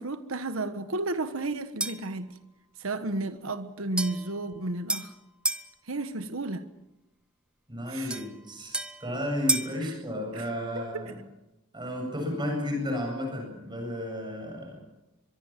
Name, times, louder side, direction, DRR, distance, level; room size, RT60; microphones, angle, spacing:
voice 1, 0.0-2.3 2.8-5.1 5.9-6.7 7.9-8.2 9.8-9.9 10.3-10.5 10.7-11.0, right 2 dB, 70° right, 1.3 m, -33 dB
sound 1, 1.8-2.2 4.0-5.7 8.1-9.8, right 1 dB, 5° right, 0.8 m, -32 dB
voice 2, 7.7-11.2 11.7-14.8, left 1 dB, 20° right, 7.9 m, -33 dB
23.5 x 23.0 x 7.5 m
head